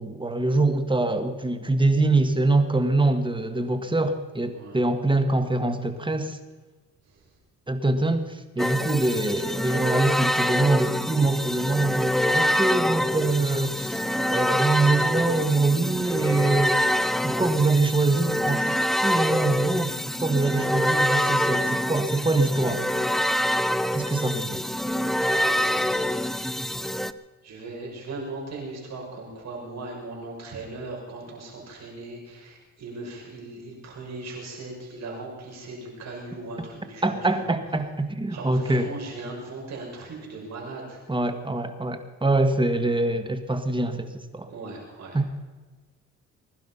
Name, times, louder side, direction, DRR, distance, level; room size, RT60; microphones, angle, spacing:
voice 1, 0.0-6.4 7.7-14.0 14.3-16.8 17.2-18.7 19.0-19.9 20.2-22.9 23.9-24.6 37.0-38.9 41.1-44.5 45.1-45.3, right 2 dB, 15° right, 8 dB, 1.6 m, -24 dB
voice 2, 4.5-4.9 25.3-26.1 27.4-37.2 37.4-37.5 38.3-41.0 44.5-45.2, right 2 dB, 60° right, -1 dB, 6.4 m, -38 dB
sound 1, 8.6-27.1, equal, ahead, 0.6 m, -25 dB
21.5 x 11.5 x 5.7 m, 1.3 s
cardioid pair, 90°, 30 cm